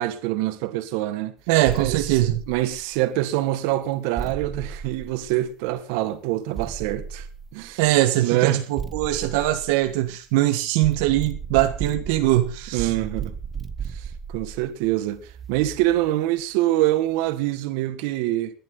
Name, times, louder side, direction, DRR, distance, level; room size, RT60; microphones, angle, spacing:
voice 1, 0.0-1.3 1.8-7.3 7.5-7.8 8.2-8.6 12.7-13.3 13.9-18.6, right 15 dB, 75° right, 1.7 m, -25 dB
voice 2, 1.5-2.4 7.8-12.9, right 15 dB, 90° right, 1.5 m, -21 dB
sound 1, 1.6-3.1 4.2-5.8 6.5-7.9 8.8-10.4 10.8-16.1, right 6 dB, 20° right, 0.8 m, -35 dB
19.5 x 11.5 x 4.0 m
cardioid pair, 170°, 0 cm